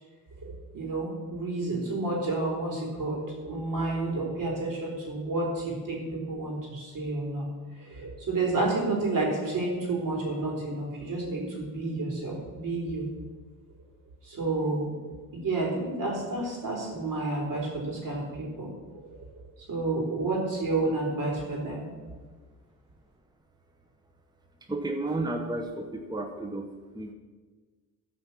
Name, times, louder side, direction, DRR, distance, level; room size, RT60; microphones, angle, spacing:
voice 1, 0.4-7.5 7.7-13.1 14.2-14.9 15.3-19.2 19.7-21.9, right 2 dB, 70° right, -2 dB, 4.0 m, -30 dB
voice 2, 24.7-26.7 26.9-27.1, right 2 dB, 10° right, 4 dB, 0.9 m, -32 dB
12.5 x 5.4 x 7.3 m, 1.4 s
cardioid pair, 105°, 34 cm